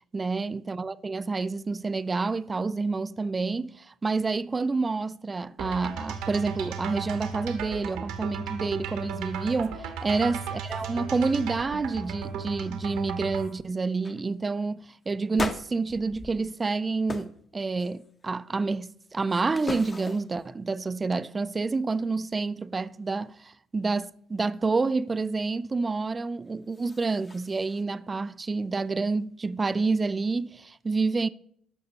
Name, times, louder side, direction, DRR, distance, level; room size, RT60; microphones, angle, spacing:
voice 1, 0.1-31.3, right 3 dB, 25° right, 0.3 m, -28 dB
sound 1, 5.6-13.5, right 6 dB, 85° right, 1.2 m, -35 dB
sound 2, 9.6-9.7 10.1-10.9 11.1-11.5 11.9-12.3 12.9-13.0 13.4-13.6 14.0-14.2 15.3-16.7 17.1-17.4 17.8-18.3 18.8-20.5 26.5-27.8, left 3 dB, 30° left, 0.8 m, -39 dB
13.0 x 5.3 x 2.8 m
supercardioid pair, 90°, 0 cm